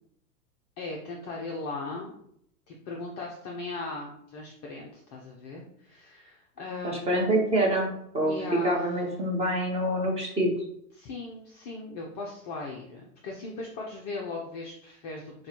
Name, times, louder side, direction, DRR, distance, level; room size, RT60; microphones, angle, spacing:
voice 1, 0.8-2.1 2.7-7.2 8.2-8.8 10.9-15.5, left 3 dB, 30° left, -1 dB, 0.4 m, -38 dB
voice 2, 6.8-8.3 8.6-10.5, right 1 dB, 15° right, -1 dB, 0.8 m, -26 dB
6.1 x 2.2 x 2.9 m, 0.73 s
hypercardioid pair, 110°, 48 cm